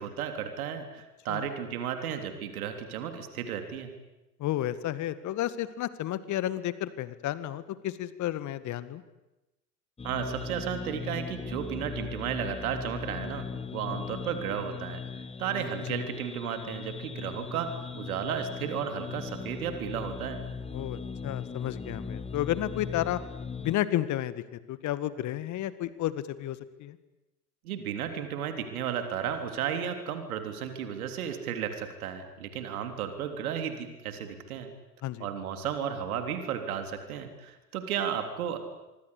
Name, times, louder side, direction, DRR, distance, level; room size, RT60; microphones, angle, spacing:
voice 1, 0.0-3.9 10.0-13.5 13.7-15.0 15.4-20.4 27.6-34.7 35.2-38.6, right 8 dB, 65° right, 7 dB, 3.5 m, -34 dB
voice 2, 4.4-9.0 15.9-16.0 20.7-23.2 23.6-27.0 35.0-35.3, left 13 dB, 35° left, 15 dB, 1.8 m, -32 dB
sound 1, 10.0-23.7, left 5 dB, 15° left, 1.3 m, -39 dB
25.5 x 24.5 x 8.5 m, 1.0 s
figure-of-eight pair, 75°, 47 cm